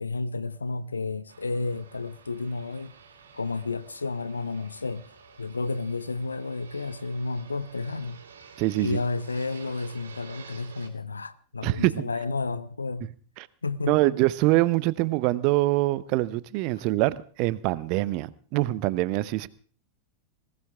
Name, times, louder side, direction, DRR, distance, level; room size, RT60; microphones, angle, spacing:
voice 1, 0.0-2.9 3.3-5.1 5.4-8.2 8.8-13.1 13.6-14.1, left 3 dB, 75° left, 0.8 m, -31 dB
Fixed-wing aircraft airplane, 1.3-10.9, right 5 dB, 70° right, 2.9 m, -50 dB
voice 2, 8.6-9.0 11.6-12.1 13.9-19.5, right 18 dB, 45° right, 0.7 m, -24 dB
20.5 x 16.5 x 3.5 m
figure-of-eight pair, 90°, 0 cm